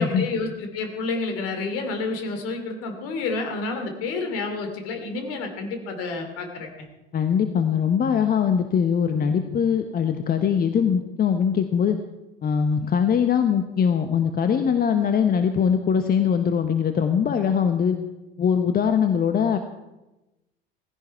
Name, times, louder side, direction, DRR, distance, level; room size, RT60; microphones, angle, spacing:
voice 1, 0.0-6.7, left 3 dB, 50° left, 5 dB, 3.0 m, -29 dB
voice 2, 7.1-12.0 12.4-18.0 18.4-19.6, left 7 dB, 30° left, 8 dB, 1.1 m, -22 dB
17.5 x 15.5 x 4.6 m, 1.0 s
figure-of-eight pair, 65°, 30 cm